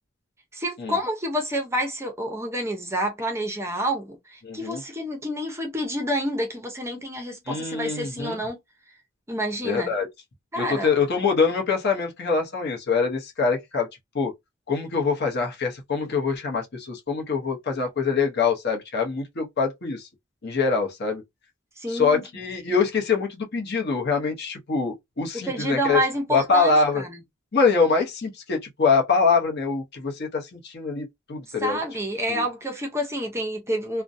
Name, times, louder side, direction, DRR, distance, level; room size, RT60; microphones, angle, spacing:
voice 1, 0.5-8.6 9.3-9.9 10.5-10.9 21.8-22.2 25.5-27.1 31.6-34.0, equal, 15° right, 0.6 m, -28 dB
voice 2, 4.4-4.8 7.5-8.4 9.6-10.1 10.6-13.9 14.1-14.3 14.7-20.1 20.4-21.2 21.9-26.0 26.3-27.0 27.5-31.8 32.3-32.5, left 4 dB, 50° left, 0.8 m, -24 dB
2.5 x 2.1 x 2.5 m
head